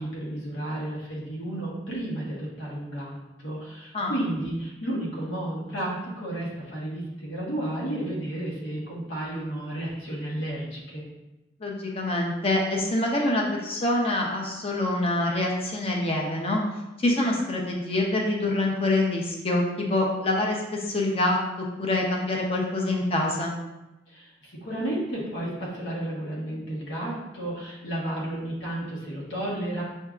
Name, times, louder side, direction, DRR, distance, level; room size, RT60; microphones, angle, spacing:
voice 1, 0.0-11.0 24.1-29.8, right 1 dB, 90° left, -5 dB, 1.3 m, -32 dB
voice 2, 11.6-16.6 17.0-21.4 21.8-23.5, left 2 dB, 30° left, -1 dB, 0.7 m, -25 dB
6.4 x 2.7 x 2.4 m, 0.98 s
head